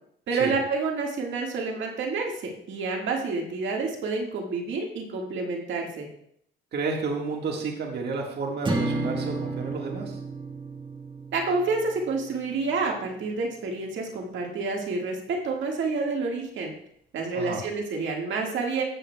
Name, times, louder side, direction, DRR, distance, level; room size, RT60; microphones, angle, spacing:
voice 1, 0.3-6.1 11.3-16.7 17.1-18.8, right 4 dB, 70° right, 0 dB, 1.7 m, -29 dB
voice 2, 6.7-10.2 17.3-17.6, right 4 dB, 55° right, 0 dB, 1.6 m, -31 dB
sound 1, 8.6-13.0, right 2 dB, 25° right, 1.5 m, -32 dB
15.0 x 7.8 x 2.2 m, 0.71 s
cardioid pair, 90°, 20 cm